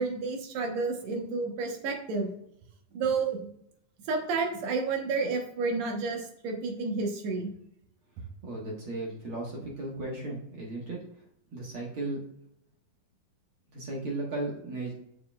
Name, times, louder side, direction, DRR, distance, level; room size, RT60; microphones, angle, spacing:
voice 1, 0.0-2.3 2.9-3.5 4.1-7.5, right 4 dB, 65° right, 2 dB, 2.1 m, -30 dB
voice 2, 8.4-11.0 11.5-12.2 13.7-14.9, right 2 dB, 50° right, -2 dB, 2.0 m, -35 dB
7.6 x 6.8 x 2.4 m, 0.74 s
omnidirectional pair, 3.7 m